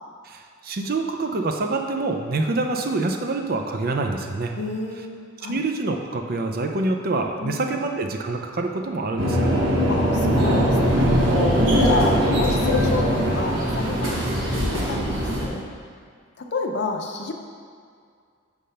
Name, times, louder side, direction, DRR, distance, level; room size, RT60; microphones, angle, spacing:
voice 1, 0.3-4.5 5.4-9.6, right 3 dB, 50° right, 4 dB, 0.5 m, -26 dB
voice 2, 4.5-5.1 5.4-5.6 7.4-7.8 9.9-11.3 11.8-15.7 16.4-17.3, left 3 dB, 60° left, 3 dB, 0.6 m, -30 dB
sound 1, 9.2-15.4, equal, 75° right, 1.4 m, -21 dB
6.4 x 3.5 x 5.6 m, 2.1 s
head